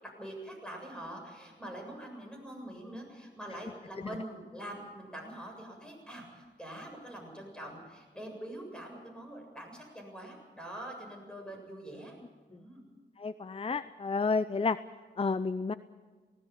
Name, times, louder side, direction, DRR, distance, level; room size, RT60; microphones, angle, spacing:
voice 1, 0.0-12.1 12.5-12.8, right 1 dB, 5° left, 1 dB, 7.4 m, -44 dB
voice 2, 13.2-14.8 15.2-15.7, left 4 dB, 30° left, 14 dB, 0.5 m, -30 dB
19.0 x 17.5 x 8.6 m, 1.4 s
wide cardioid pair, 70°, 19 cm